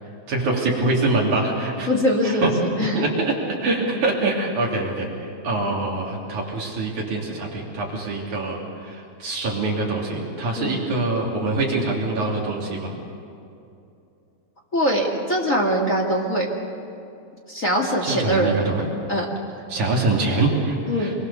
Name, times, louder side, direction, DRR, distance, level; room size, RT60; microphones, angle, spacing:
voice 1, 0.3-1.9 2.2-2.5 2.9-5.1 5.4-12.9 18.0-18.9 19.7-21.1, right 2 dB, 45° right, -2 dB, 3.9 m, -24 dB
voice 2, 1.9-3.1 10.6-10.8 14.7-16.5 17.5-18.6 19.1-19.2 20.9-21.1, equal, 35° left, -1 dB, 1.3 m, -22 dB
27.0 x 22.5 x 6.8 m, 2.7 s
omnidirectional pair, 5.2 m